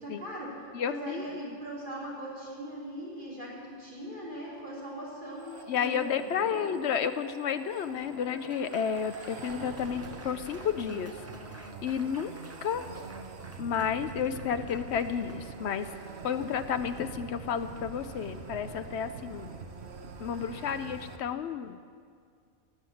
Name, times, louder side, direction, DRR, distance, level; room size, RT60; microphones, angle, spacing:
voice 1, 0.0-6.7, right 1 dB, 35° right, -6 dB, 4.3 m, -40 dB
voice 2, 0.7-1.4 5.7-11.2 11.6-12.3 12.6-12.8 13.6-15.9 16.2-19.5 20.2-21.8, left 7 dB, 65° left, 11 dB, 0.8 m, -31 dB
sound 1, 5.4-21.2, right 4 dB, 55° right, 1.2 m, -45 dB
Laughter / Applause, 7.6-15.5, right 2 dB, 20° right, 0.4 m, -51 dB
18.0 x 7.4 x 7.7 m, 2.1 s
omnidirectional pair, 1.4 m